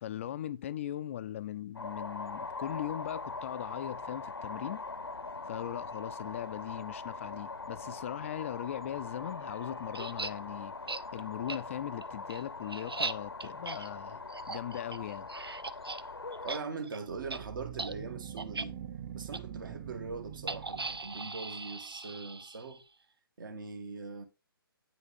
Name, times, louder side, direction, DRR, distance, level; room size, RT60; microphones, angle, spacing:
voice 1, 0.0-4.8 5.5-10.7 11.1-15.3, left 11 dB, 35° left, 0.4 m, -39 dB
sound 1, 1.7-16.6, left 3 dB, 90° left, 0.9 m, -42 dB
sound 2, 9.9-10.3 10.9-11.0 11.5-11.6 12.0-16.0 16.3-16.6 16.8-17.0 17.3-17.4 17.7-17.9 18.4-18.7 19.3-19.4 20.5-22.8, right 3 dB, 90° right, 0.6 m, -39 dB
voice 2, 16.4-18.7 19.1-22.8 23.4-24.2, right 4 dB, 60° right, 2.1 m, -41 dB
sound 3, 17.1-21.5, right 10 dB, 25° right, 0.9 m, -44 dB
9.1 x 5.9 x 3.7 m
figure-of-eight pair, 135°, 12 cm